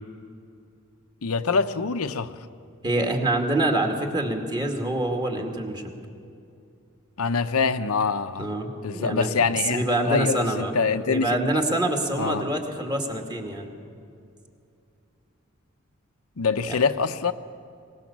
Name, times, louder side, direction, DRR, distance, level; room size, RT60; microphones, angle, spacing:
voice 1, 1.2-2.4 7.2-8.5 8.8-11.5 12.2-12.5 16.4-17.3, left 5 dB, 85° left, 9 dB, 0.8 m, -25 dB
voice 2, 2.8-5.9 8.4-10.7 11.1-13.7 16.7-16.8, right 1 dB, 20° right, 2 dB, 2.4 m, -26 dB
23.0 x 20.5 x 7.3 m, 2.5 s
head